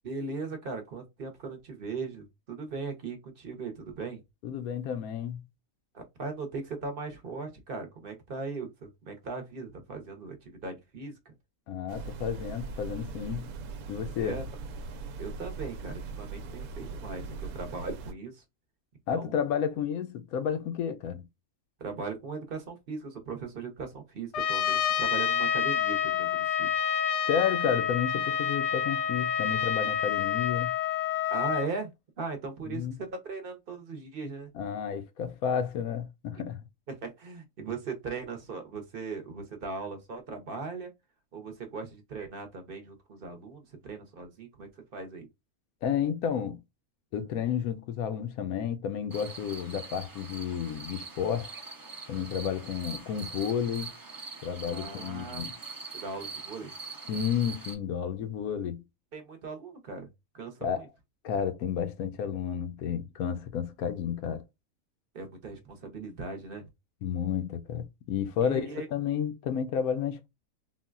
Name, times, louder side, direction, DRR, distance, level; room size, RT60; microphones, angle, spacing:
voice 1, 0.0-4.2 5.9-11.3 14.2-14.4 15.2-18.4 19.1-19.4 21.8-26.7 31.3-31.9 32.2-34.5 36.9-40.9 41.3-45.3 54.7-55.4 55.9-56.7 59.1-60.1 60.3-60.9 65.1-66.7 68.4-68.9, right 4 dB, 50° right, 0.8 m, -38 dB
voice 2, 4.4-5.5 11.7-13.5 13.9-14.4 19.1-21.2 27.3-30.8 32.7-33.0 34.5-36.6 45.8-46.6 47.1-51.5 52.1-53.9 54.4-55.5 57.1-58.8 60.6-60.9 61.2-64.4 67.0-70.3, left 8 dB, 90° left, 1.1 m, -31 dB
sound 1, 11.9-18.1, right 4 dB, 90° right, 1.1 m, -40 dB
Trumpet, 24.3-31.7, left 9 dB, 65° left, 0.7 m, -28 dB
sound 2, 49.1-57.7, right 4 dB, 30° right, 0.4 m, -43 dB
3.7 x 2.2 x 2.3 m
omnidirectional pair, 1.5 m